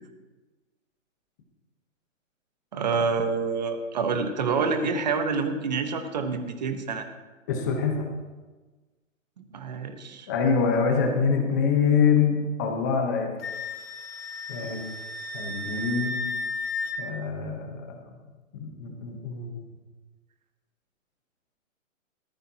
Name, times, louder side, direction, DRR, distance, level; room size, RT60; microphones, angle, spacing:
voice 1, 2.7-7.1 9.4-10.3, right 4 dB, 30° right, 7 dB, 1.1 m, -27 dB
voice 2, 7.5-8.1 10.3-13.3 14.5-14.8 15.3-16.1 17.0-18.1 18.5-19.6, left 6 dB, 15° left, 2 dB, 0.9 m, -25 dB
Wind instrument woodwind instrument, 13.4-17.0, left 2 dB, 45° left, 1.2 m, -33 dB
18.0 x 14.0 x 2.8 m, 1.3 s
hypercardioid pair, 170°, 40 cm